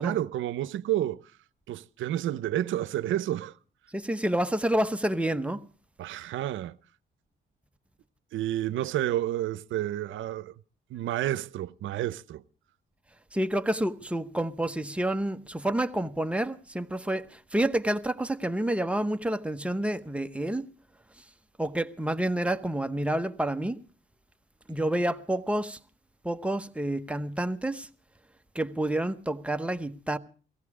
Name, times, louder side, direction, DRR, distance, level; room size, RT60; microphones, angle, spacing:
voice 1, 0.0-1.3 1.7-3.6 6.0-6.8 8.3-10.5 10.9-12.4, right 13 dB, 75° right, 0.7 m, -30 dB
voice 2, 3.9-5.6 13.3-20.7 21.6-23.8 24.7-25.8 26.2-27.9 28.5-30.2, right 1 dB, 5° right, 0.9 m, -29 dB
18.5 x 15.0 x 4.8 m
cardioid pair, 90°, 20 cm